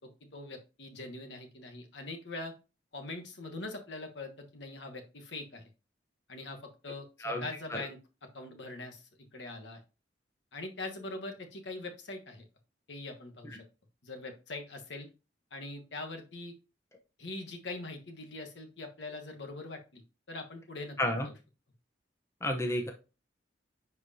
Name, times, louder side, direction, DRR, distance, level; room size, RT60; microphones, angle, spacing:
voice 1, 0.0-2.5 2.9-5.7 6.3-8.0 8.3-9.0 9.3-9.8 10.5-12.4 12.9-13.6 14.0-15.1 15.5-16.5 17.2-20.0 20.3-21.0 21.2-21.3, left 2 dB, 70° left, 4 dB, 1.3 m, -42 dB
voice 2, 22.4-22.9, left 1 dB, 15° left, 3 dB, 0.8 m, -31 dB
10.0 x 4.7 x 2.8 m, 0.31 s
head